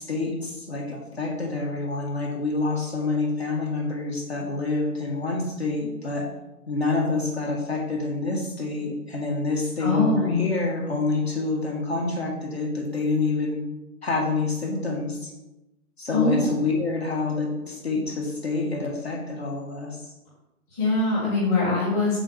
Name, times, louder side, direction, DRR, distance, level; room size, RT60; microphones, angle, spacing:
voice 1, 0.0-6.3 6.7-13.6 14.0-15.3 16.0-20.1, left 3 dB, 45° left, -1 dB, 1.7 m, -27 dB
voice 2, 9.8-10.5 16.1-16.7 20.7-22.2, left 3 dB, 10° left, -9 dB, 1.8 m, -23 dB
7.3 x 4.0 x 6.7 m, 0.96 s
figure-of-eight pair, 150°, 46 cm